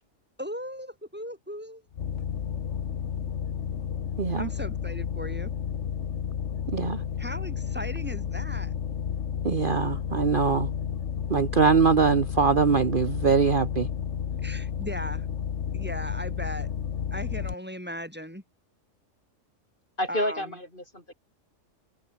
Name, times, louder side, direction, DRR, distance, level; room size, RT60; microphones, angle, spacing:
voice 1, 0.4-1.8 4.3-5.5 7.2-8.8 14.4-15.3 15.7-16.7 17.1-18.4 20.1-20.6, equal, 5° right, 6.7 m, -37 dB
sound 1, 1.9-17.5, left 8 dB, 65° left, 1.4 m, -32 dB
voice 2, 4.2-4.5 6.7-7.0 9.4-10.7 11.3-13.9, right 5 dB, 45° right, 1.3 m, -22 dB
voice 3, 20.0-21.1, left 1 dB, 40° left, 8.4 m, -30 dB
omnidirectional pair, 1.3 m